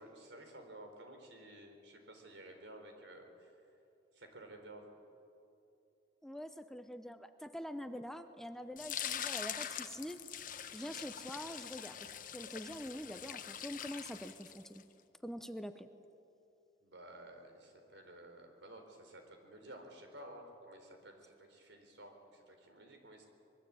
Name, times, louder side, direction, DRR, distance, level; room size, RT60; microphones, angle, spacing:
voice 1, 0.0-3.5 4.1-4.8 16.8-23.3, right 1 dB, 85° right, 4 dB, 4.4 m, -53 dB
voice 2, 6.2-10.2 10.7-14.8 15.2-15.9, equal, ahead, 9 dB, 0.8 m, -45 dB
sound 1, 8.8-14.8, left 9 dB, 50° left, 1.2 m, -43 dB
25.0 x 22.0 x 8.7 m, 2.8 s
head